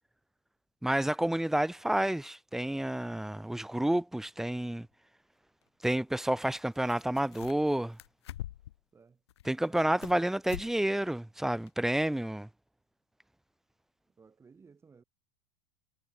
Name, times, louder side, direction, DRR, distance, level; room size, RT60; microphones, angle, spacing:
voice 1, 0.8-4.9 5.8-8.0 9.5-12.5, right 1 dB, 5° right, 0.5 m, -30 dB
sound 1, 6.5-6.6 6.9-7.7 8.0-8.8 9.3-10.2 10.5-10.7 11.0-11.1 11.7-11.8, left 13 dB, 85° left, 2.9 m, -44 dB
voice 2, 9.6-10.2 14.2-15.0, right 5 dB, 20° right, 6.2 m, -57 dB
supercardioid pair, 115°, 14 cm